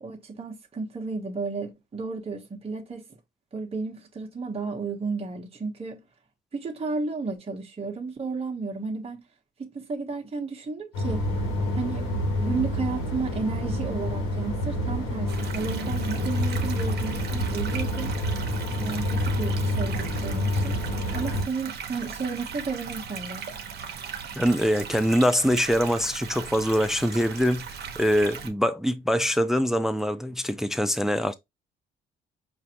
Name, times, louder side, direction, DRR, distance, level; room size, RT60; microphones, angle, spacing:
voice 1, 0.0-3.0 3.5-6.0 6.5-9.2 9.6-11.2 11.7-12.1 12.4-18.1 18.8-20.8 21.1-23.5, right 4 dB, 30° right, 1.0 m, -33 dB
sound 1, 10.9-21.4, left 1 dB, 85° left, 1.7 m, -28 dB
sound 2, 15.3-28.5, right 7 dB, 55° right, 0.9 m, -38 dB
voice 2, 24.4-31.3, equal, ahead, 0.4 m, -24 dB
4.8 x 2.5 x 2.8 m
cardioid pair, 90°, 20 cm